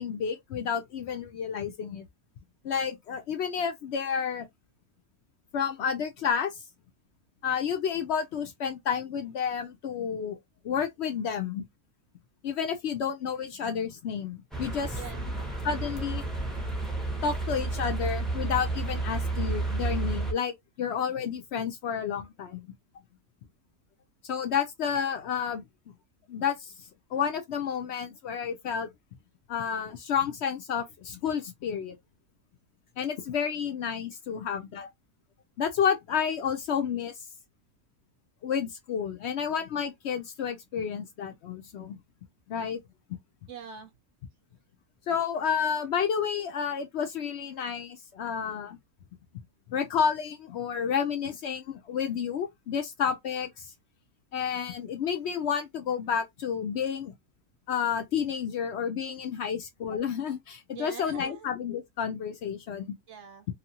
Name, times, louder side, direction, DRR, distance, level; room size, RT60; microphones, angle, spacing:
voice 1, 0.0-2.0 2.6-4.5 5.5-6.6 7.4-10.4 10.6-11.6 12.4-15.0 15.6-16.2 17.2-22.7 24.2-25.7 26.3-28.9 29.5-32.0 33.0-34.9 35.6-37.1 38.4-42.0 42.5-42.8 45.1-48.8 49.3-49.4 49.7-53.7 54.3-57.1 57.7-62.9, left 7 dB, 70° left, 0.6 m, -30 dB
sound 1, 14.5-20.3, right 3 dB, ahead, 0.5 m, -31 dB
voice 2, 15.0-15.4 43.5-43.9 60.7-61.5 63.1-63.5, right 7 dB, 65° right, 0.8 m, -43 dB
2.7 x 2.5 x 2.7 m
omnidirectional pair, 1.6 m